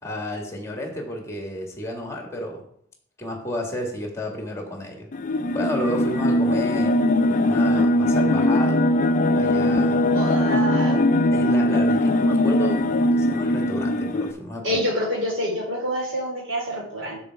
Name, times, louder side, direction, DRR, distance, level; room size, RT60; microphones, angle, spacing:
voice 1, 0.0-2.7 3.2-5.1 5.5-7.0 7.4-8.8 9.4-10.2 10.5-14.8, left 1 dB, 15° left, 2 dB, 1.9 m, -32 dB
sound 1, 5.1-14.3, left 1 dB, 45° left, 0.4 m, -20 dB
voice 2, 10.1-11.0 14.6-17.2, equal, 70° right, -3 dB, 3.9 m, -27 dB
6.9 x 6.8 x 4.7 m, 0.65 s
head